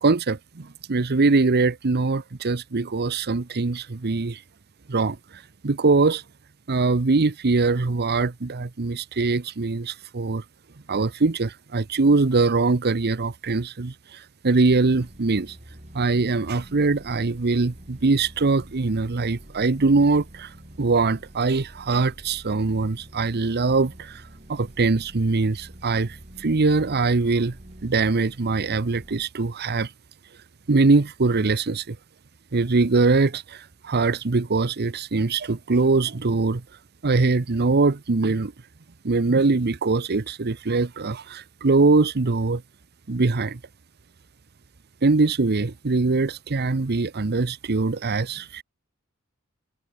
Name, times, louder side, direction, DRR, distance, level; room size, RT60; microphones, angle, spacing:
voice 1, 0.0-4.4 4.9-5.2 5.6-6.2 6.7-10.4 10.9-15.6 15.9-20.5 20.8-24.2 24.5-27.6 27.8-29.9 30.7-32.0 32.5-36.6 37.0-38.5 39.0-42.6 43.1-43.6 45.0-48.6, right 3 dB, 50° right, 0.8 m, -22 dB
sound 1, 14.7-29.3, equal, 35° right, 3.4 m, -46 dB
head